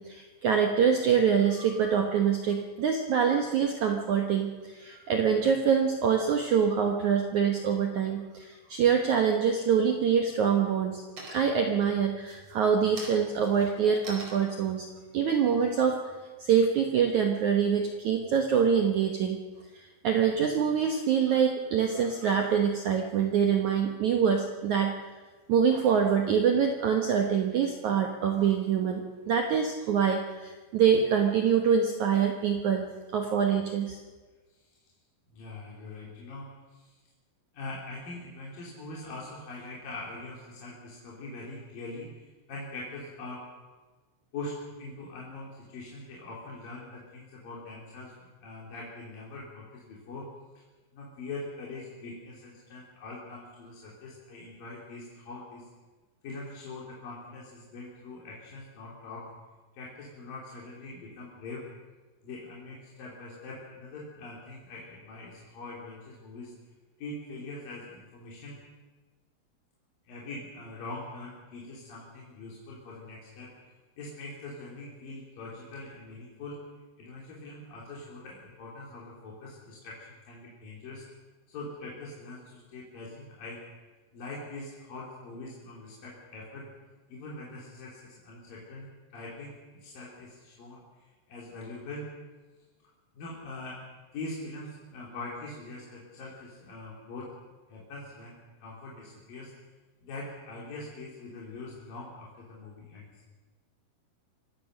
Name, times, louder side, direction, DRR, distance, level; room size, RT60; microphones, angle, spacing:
voice 1, 0.0-11.0 11.3-14.9 15.1-16.0 16.4-19.4 19.8-24.9 25.5-32.9 33.1-34.0, right 7 dB, 75° right, 4 dB, 1.7 m, -25 dB
sound 1, 9.5-10.1 10.5-10.9 11.2-11.7 12.2-16.6, right 2 dB, 35° right, 5.3 m, -46 dB
voice 2, 35.3-37.0 37.5-43.4 44.3-48.1 48.4-50.3 50.9-55.7 56.2-59.3 59.7-61.6 62.2-66.5 67.0-68.6 70.1-73.5 74.0-76.6 77.0-81.0 81.5-83.6 84.1-86.7 87.1-88.9 89.1-92.0 93.1-93.8 94.1-97.3 97.7-99.5 100.0-103.1, left 2 dB, 50° left, -4 dB, 4.5 m, -43 dB
25.5 x 16.5 x 6.5 m, 1.3 s
omnidirectional pair, 5.2 m